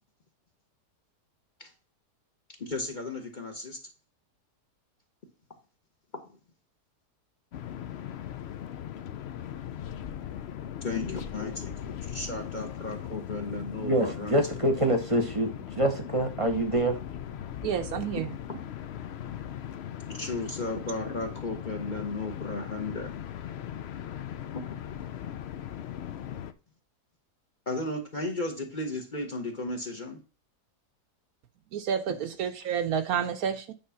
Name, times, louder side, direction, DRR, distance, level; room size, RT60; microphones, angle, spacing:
voice 1, 2.6-3.8 10.8-14.6 20.1-23.1 24.5-25.1 27.7-30.2, left 2 dB, 35° left, 1.1 m, -35 dB
sound 1, 7.5-26.5, left 10 dB, 75° left, 0.6 m, -39 dB
voice 2, 13.8-17.0, right 1 dB, 25° right, 0.9 m, -26 dB
voice 3, 17.6-18.3 31.7-33.7, right 8 dB, 70° right, 1.0 m, -29 dB
8.8 x 3.4 x 5.7 m
omnidirectional pair, 1.7 m